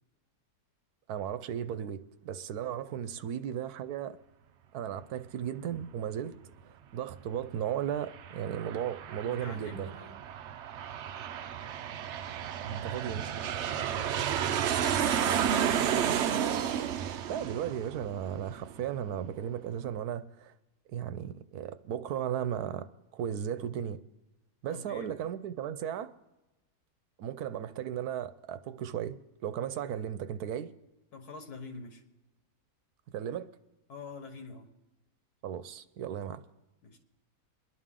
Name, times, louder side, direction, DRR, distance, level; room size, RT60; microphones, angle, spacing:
voice 1, 1.1-4.2 4.7-6.3 6.7-9.9 12.6-13.3 17.0-20.5 20.9-22.9 23.1-24.0 24.6-26.1 27.2-29.1 29.4-30.7 33.1-33.5 35.4-36.4, right 9 dB, 80° right, 1.2 m, -35 dB
Aircraft, 7.9-19.0, right 9 dB, 65° right, 0.7 m, -32 dB
voice 2, 9.3-10.2 14.2-16.2 24.7-25.1 31.1-32.0 33.9-34.7 36.8-37.0, left 3 dB, 85° left, 2.0 m, -46 dB
23.0 x 11.0 x 3.7 m
omnidirectional pair, 1.6 m